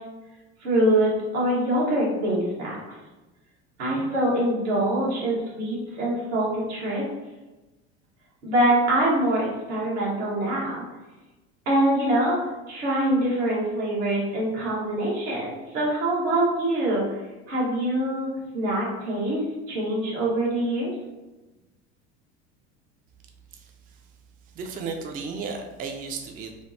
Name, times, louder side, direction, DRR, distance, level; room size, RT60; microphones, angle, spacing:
voice 1, 0.6-2.8 3.8-7.0 8.4-10.8 11.7-12.4 12.7-17.0 17.5-20.9, right 1 dB, 90° right, -5 dB, 1.2 m, -24 dB
voice 2, 24.5-26.6, right 4 dB, 25° right, 3 dB, 0.3 m, -34 dB
3.2 x 2.0 x 2.6 m, 1.1 s
hypercardioid pair, 90°, 33 cm